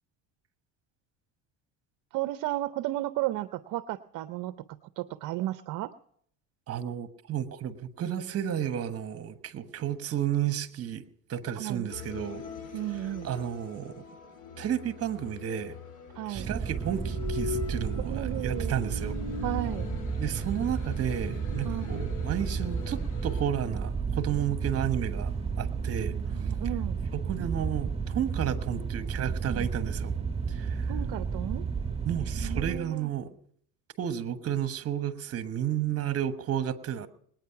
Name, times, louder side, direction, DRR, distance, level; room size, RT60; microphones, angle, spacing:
voice 1, 2.1-5.9 11.6-11.9 12.7-13.3 16.1-16.5 18.0-18.7 19.4-19.9 21.6-21.9 26.1-27.0 29.5-29.7 30.9-31.6 32.3-33.1, right 15 dB, 60° right, 13 dB, 0.6 m, -34 dB
voice 2, 6.7-11.0 11.3-12.4 13.2-14.0 14.6-15.8 16.3-19.2 20.2-26.1 27.1-30.2 30.5-30.9 32.0-33.3 34.0-37.1, right 10 dB, 40° right, 11 dB, 1.2 m, -32 dB
sound 1, 11.9-23.4, left 6 dB, 55° left, 2.7 m, -41 dB
sound 2, 16.3-32.8, right 5 dB, 15° right, 1.4 m, -32 dB
20.0 x 9.2 x 5.7 m, 0.65 s
supercardioid pair, 100°, 37 cm